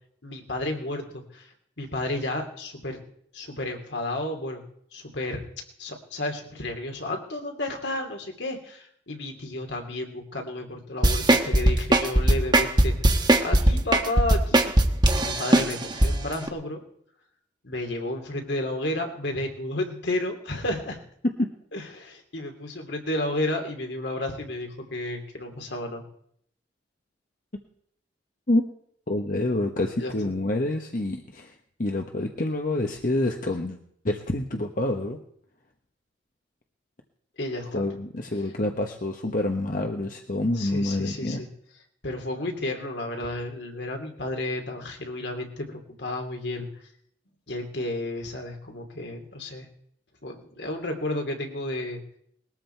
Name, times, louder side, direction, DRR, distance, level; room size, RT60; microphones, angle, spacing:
voice 1, 0.2-3.0 3.3-4.6 4.9-5.4 5.8-14.7 15.1-16.8 17.6-21.0 21.7-26.0 30.0-30.1 37.4-37.9 40.5-41.5 42.0-46.7 47.5-49.7 50.2-52.0, left 1 dB, 70° left, 3 dB, 2.9 m, -32 dB
sound 1, 11.0-16.1 16.5-16.6, right 1 dB, 25° right, 1.2 m, -18 dB
voice 2, 29.1-33.8 34.0-35.2 37.7-41.4, left 1 dB, 50° left, 4 dB, 1.2 m, -27 dB
20.5 x 13.5 x 4.6 m, 0.68 s
head